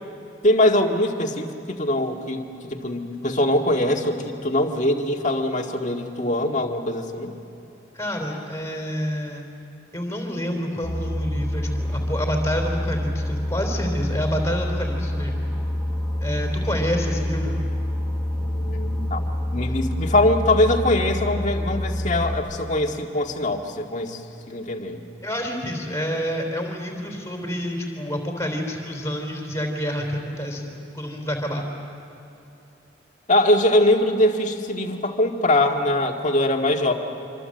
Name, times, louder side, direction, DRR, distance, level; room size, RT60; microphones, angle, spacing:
voice 1, 0.4-7.3 18.4-24.2 24.5-25.0 33.3-36.9, left 1 dB, 40° left, 2 dB, 1.9 m, -22 dB
voice 2, 7.9-9.5 9.9-15.4 16.2-17.6 25.2-31.6, equal, 15° left, 2 dB, 3.8 m, -28 dB
Boat Water vehicle, 10.8-22.4, left 1 dB, 10° right, 5.6 m, -27 dB
26.0 x 25.0 x 7.8 m, 2.8 s
head